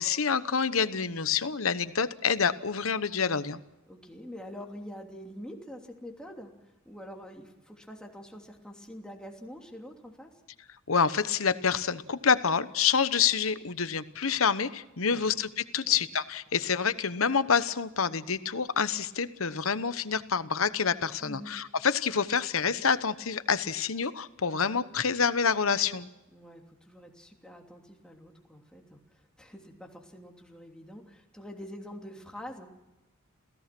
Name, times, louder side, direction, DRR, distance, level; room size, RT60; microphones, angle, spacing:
voice 1, 0.0-3.6 10.9-26.1, left 6 dB, 75° left, 13 dB, 1.1 m, -27 dB
voice 2, 3.9-10.3 15.1-15.2 15.8-16.0 21.2-21.5 26.3-32.7, equal, 5° left, 1 dB, 3.0 m, -45 dB
28.0 x 17.0 x 6.1 m, 1.0 s
head